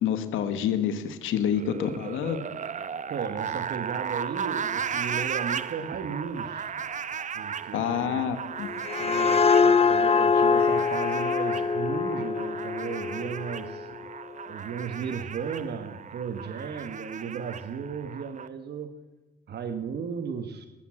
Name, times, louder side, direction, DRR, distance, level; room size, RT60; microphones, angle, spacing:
voice 1, 0.0-2.4 7.7-8.7, left 9 dB, 85° left, 10 dB, 1.4 m, -28 dB
sound 1, 1.5-18.5, right 7 dB, 40° right, 0.7 m, -36 dB
voice 2, 3.1-6.7 7.3-8.3 9.0-13.9 14.5-18.9 19.5-20.7, right 6 dB, 55° right, 7 dB, 1.4 m, -35 dB
sound 2, 8.6-14.1, left 5 dB, 30° left, 0.8 m, -24 dB
18.0 x 8.4 x 7.6 m, 1.1 s
cardioid pair, 90°, 20 cm